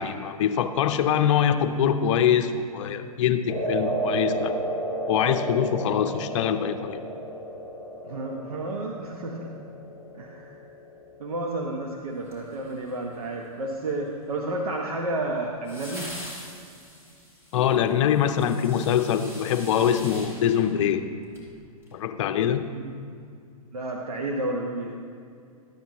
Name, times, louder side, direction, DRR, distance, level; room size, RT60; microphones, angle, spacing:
voice 1, 0.0-4.5 5.1-7.0 17.5-21.1 21.9-22.6, left 9 dB, 55° left, 8 dB, 0.7 m, -24 dB
sound 1, 3.5-11.8, right 1 dB, 10° left, 2.3 m, -32 dB
voice 2, 8.0-9.5 10.1-10.5 11.2-16.1 22.7-22.9 23.7-24.9, right 2 dB, 75° right, 0 dB, 1.0 m, -31 dB
sound 2, 12.2-13.2 15.7-21.5 21.8-21.9, equal, 15° right, 2.7 m, -43 dB
13.0 x 9.2 x 3.0 m, 2.3 s
hypercardioid pair, 115°, 19 cm